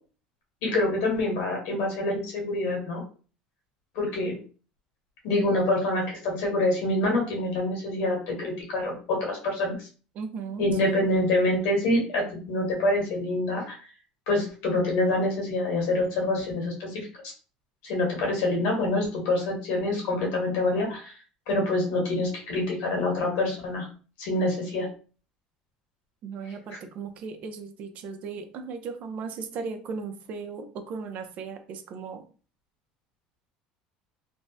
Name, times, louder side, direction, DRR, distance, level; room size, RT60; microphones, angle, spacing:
voice 1, 0.6-3.0 3.9-4.4 5.2-9.9 10.6-13.8 14.3-17.2 17.8-21.1 21.5-23.9 24.2-24.9 26.7-26.8, left 2 dB, 75° left, -1 dB, 1.6 m, -26 dB
voice 2, 10.1-11.1 26.2-32.2, right 5 dB, 55° right, 7 dB, 0.6 m, -37 dB
3.4 x 2.1 x 2.7 m, 0.38 s
supercardioid pair, 110°, 3 cm